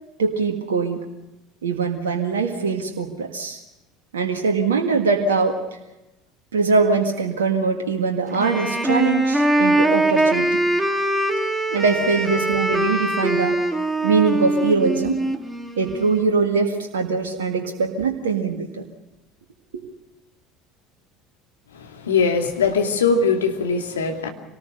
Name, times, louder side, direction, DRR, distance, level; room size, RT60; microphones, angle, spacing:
voice 1, 0.2-1.1 1.6-3.6 4.1-5.6 6.5-10.6 11.7-13.6 14.0-15.2 15.8-18.8 19.7-19.8, right 4 dB, 80° right, 4 dB, 1.8 m, -22 dB
Wind instrument woodwind instrument, 8.3-16.2, right 1 dB, 5° right, 2.7 m, -22 dB
voice 2, 21.7-24.3, left 5 dB, 80° left, 4 dB, 2.5 m, -21 dB
26.5 x 19.0 x 6.6 m, 0.98 s
figure-of-eight pair, 65°, 0 cm